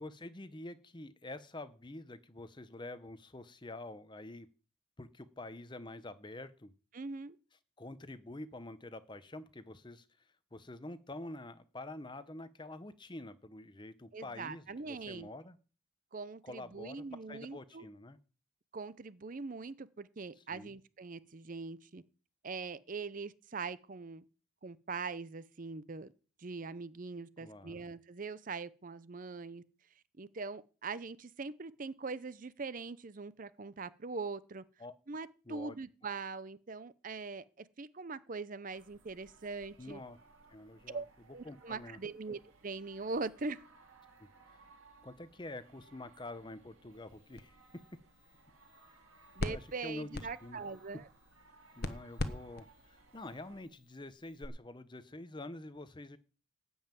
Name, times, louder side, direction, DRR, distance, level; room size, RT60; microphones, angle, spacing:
voice 1, 0.0-4.5 5.0-6.7 7.8-10.1 10.5-15.6 16.4-18.2 20.4-20.8 27.4-27.9 34.8-34.9 35.5-35.7 39.8-40.2 40.5-41.0 41.4-42.0 44.2-44.6 45.0-47.8 49.4-50.6 51.8-56.2, left 2 dB, 20° left, 0.7 m, -47 dB
voice 2, 6.9-7.4 14.1-15.3 16.1-17.8 18.7-22.0 22.4-24.2 24.6-26.1 26.4-29.6 30.2-34.6 35.1-40.0 40.9-41.1 41.3-43.6 49.4-51.0, right 4 dB, 40° right, 0.5 m, -42 dB
sound 1, 38.7-53.6, right 3 dB, 75° right, 2.6 m, -62 dB
sound 2, 46.9-54.5, left 2 dB, 45° left, 1.0 m, -44 dB
13.5 x 5.5 x 9.0 m
head